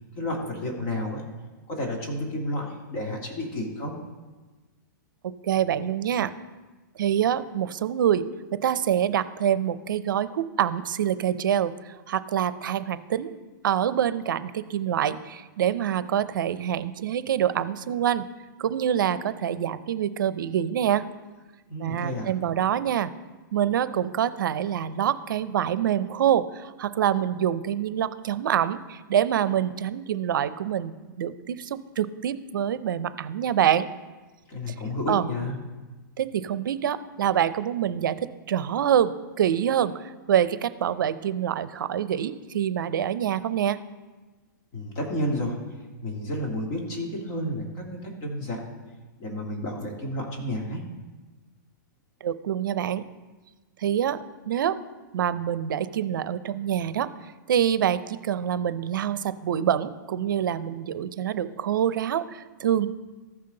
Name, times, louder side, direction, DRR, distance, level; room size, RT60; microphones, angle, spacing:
voice 1, 0.2-1.2 1.7-3.9 21.7-22.3 34.5-35.5 44.7-45.6 46.0-48.6 49.2-50.8, left 1 dB, 35° left, 0 dB, 1.7 m, -31 dB
voice 2, 5.4-6.3 7.0-8.2 8.6-13.4 13.6-18.2 18.6-21.1 21.8-23.1 23.5-33.9 34.7-34.8 35.1-35.3 36.2-43.8 52.2-53.0 53.8-54.8 55.1-57.1 57.5-62.9, right 10 dB, 75° right, 14 dB, 0.5 m, -26 dB
14.0 x 5.7 x 3.8 m, 1.3 s
hypercardioid pair, 160°, 11 cm